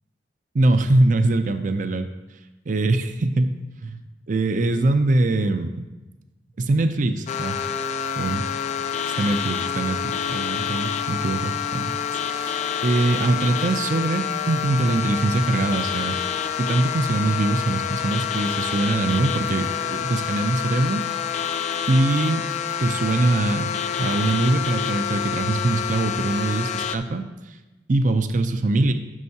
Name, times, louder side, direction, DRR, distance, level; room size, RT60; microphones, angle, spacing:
voice 1, 0.5-2.1 2.7-4.0 4.3-5.8 6.6-7.6 8.2-8.4 9.2-12.0 12.3-16.2 16.6-21.1 21.9-22.4 22.8-23.7 24.0-27.3 27.9-28.9, right 2 dB, 45° right, 9 dB, 0.5 m, -22 dB
sound 1, 7.3-27.0, left 8 dB, 40° left, 0.4 m, -27 dB
11.0 x 6.5 x 2.8 m, 1.1 s
head